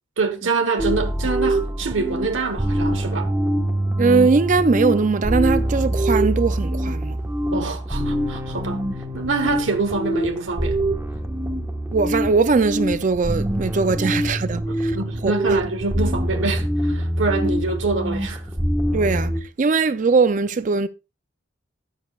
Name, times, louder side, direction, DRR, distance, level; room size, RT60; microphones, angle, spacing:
voice 1, 0.2-3.3 7.5-8.8 9.1-10.8 14.7-18.4, right 4 dB, 70° right, 1.2 m, -25 dB
sound 1, 0.8-19.4, right 1 dB, 10° right, 1.3 m, -24 dB
voice 2, 4.0-7.2 11.9-14.9 15.2-15.3 17.4-17.5 18.9-19.3 19.6-20.9, right 4 dB, 35° right, 0.4 m, -20 dB
13.0 x 10.0 x 2.4 m
head